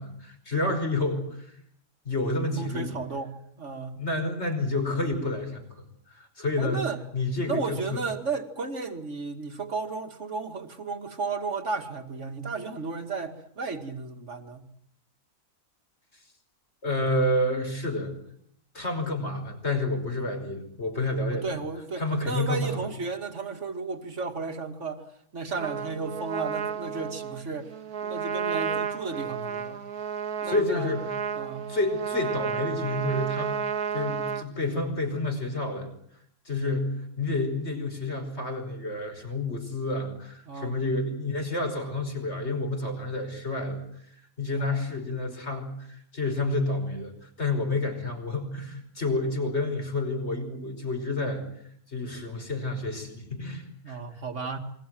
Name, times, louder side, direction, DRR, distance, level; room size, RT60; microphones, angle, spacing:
voice 1, 0.0-1.5 2.1-3.0 4.0-6.8 7.1-8.0 16.8-18.1 18.7-21.5 22.0-22.8 30.4-31.1 31.7-33.6 33.9-35.9 36.5-51.4 51.9-54.0, left 2 dB, 40° left, 5 dB, 5.7 m, -29 dB
voice 2, 2.6-4.0 6.6-7.0 7.5-14.7 21.3-25.0 25.3-27.7 28.0-29.8 30.4-30.9 31.3-31.7 40.5-40.7 44.6-44.9 53.8-54.6, right 4 dB, 45° right, 6 dB, 2.6 m, -34 dB
Trumpet, 25.6-34.5, right 7 dB, 70° right, 2.2 m, -32 dB
28.5 x 23.0 x 7.7 m, 0.68 s
omnidirectional pair, 1.7 m